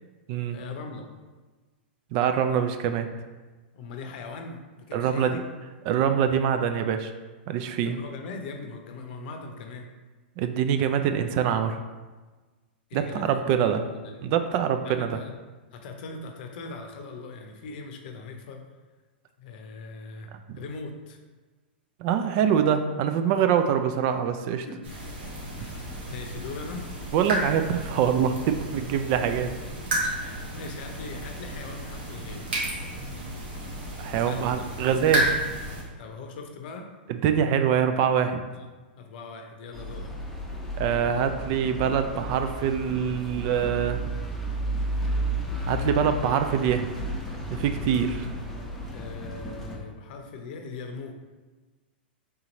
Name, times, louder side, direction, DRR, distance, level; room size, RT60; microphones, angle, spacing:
voice 1, 0.5-1.1 3.7-5.4 7.8-9.9 12.9-14.2 14.8-15.3 15.7-18.6 19.4-20.3 20.6-21.2 24.7-24.8 25.6-26.9 30.2-32.4 34.2-34.6 36.0-36.9 38.5-38.7 39.0-40.1 41.8-41.9 48.9-51.1, left 4 dB, 60° left, 4 dB, 0.6 m, -40 dB
voice 2, 2.1-3.1 4.9-5.4 5.9-7.1 7.5-8.0 10.4-11.8 12.9-13.8 14.2-15.2 20.5-20.6 22.0-24.7 27.1-29.5 30.2-30.4 34.0-35.3 37.1-38.4 40.8-44.0 45.7-46.9 47.5-48.3, right 8 dB, 45° right, 8 dB, 0.3 m, -24 dB
sound 1, 24.8-35.8, right 1 dB, 75° right, 1.4 m, -32 dB
sound 2, 39.7-49.8, equal, 5° left, 0.8 m, -33 dB
3.7 x 2.9 x 3.9 m, 1.3 s
hypercardioid pair, 115°, 6 cm